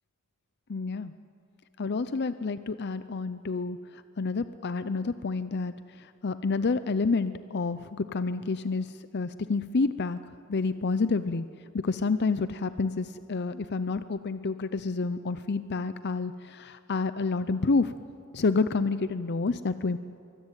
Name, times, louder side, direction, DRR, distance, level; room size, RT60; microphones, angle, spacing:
voice 1, 0.7-1.1 1.8-10.2 10.5-11.5 11.7-17.9 18.3-20.0, left 4 dB, 55° left, 13 dB, 0.6 m, -29 dB
24.0 x 23.5 x 9.0 m, 2.5 s
head